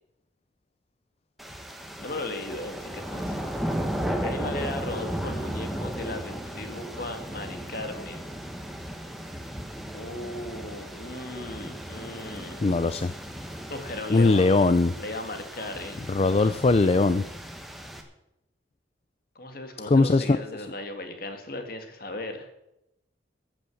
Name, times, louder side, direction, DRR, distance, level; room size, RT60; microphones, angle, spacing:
sound 1, 1.4-18.0, equal, ahead, 1.3 m, -35 dB
voice 1, 2.0-3.7 4.2-8.3 9.9-12.6 13.7-14.5 15.0-16.0 19.4-22.5, left 2 dB, 50° left, 6 dB, 2.0 m, -37 dB
voice 2, 12.6-13.1 14.1-14.9 16.1-17.2 19.9-20.3, left 3 dB, 35° left, 13 dB, 0.4 m, -20 dB
14.0 x 8.3 x 7.1 m, 0.86 s
head